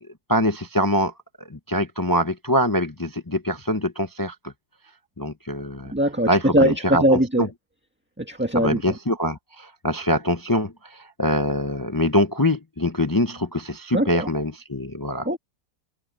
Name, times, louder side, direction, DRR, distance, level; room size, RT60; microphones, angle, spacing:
voice 1, 0.3-1.1 1.5-4.5 5.2-5.9 6.3-7.5 8.5-15.3, left 1 dB, 35° left, 0.3 m, -24 dB
voice 2, 5.9-7.4 8.2-8.8 13.9-14.3 15.2-15.4, right 1 dB, 5° right, 1.6 m, -21 dB
omnidirectional pair, 1.9 m